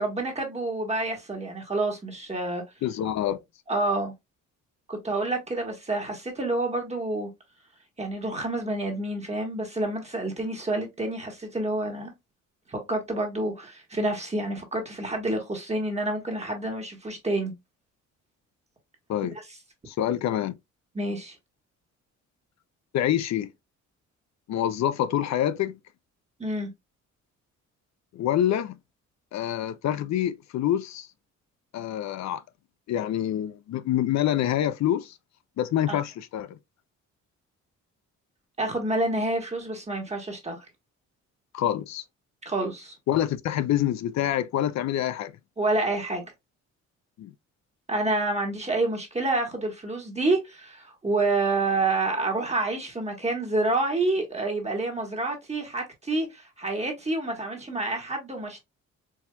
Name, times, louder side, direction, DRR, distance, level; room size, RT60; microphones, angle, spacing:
voice 1, 0.0-2.6 3.7-4.1 4.9-7.3 8.0-12.1 12.7-17.5 20.9-21.3 26.4-26.7 35.9-36.0 38.6-40.6 42.4-42.9 45.6-46.2 47.9-58.6, right 2 dB, 20° right, 1.3 m, -28 dB
voice 2, 2.8-3.4 19.1-19.4 19.9-20.5 22.9-23.5 24.5-25.7 28.1-28.8 29.3-31.1 31.7-32.4 32.9-35.1 35.6-36.6 41.5-42.0 43.1-45.3 47.2-47.3, left 11 dB, 65° left, 0.5 m, -26 dB
4.6 x 2.8 x 2.2 m
cardioid pair, 90°, 30 cm